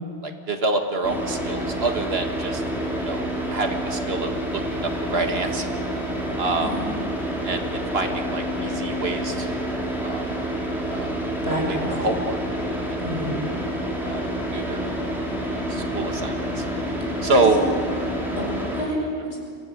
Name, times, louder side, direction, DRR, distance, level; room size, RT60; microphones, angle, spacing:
voice 1, 0.2-2.6 3.0-5.7 6.4-6.7 7.4-9.6 10.0-10.2 10.9-11.2 11.7-12.4 12.9-13.0 14.0-14.9 15.5-16.6 17.2-17.6, right 3 dB, 80° right, 4 dB, 2.0 m, -27 dB
Car / Idling, 1.0-18.8, equal, ahead, 5.1 m, -28 dB
voice 2, 11.4-12.1 13.0-13.4 17.3-17.7 18.4-18.5 18.8-19.4, equal, 85° left, 0 dB, 5.5 m, -28 dB
25.0 x 17.0 x 8.5 m, 2.3 s
omnidirectional pair, 1.0 m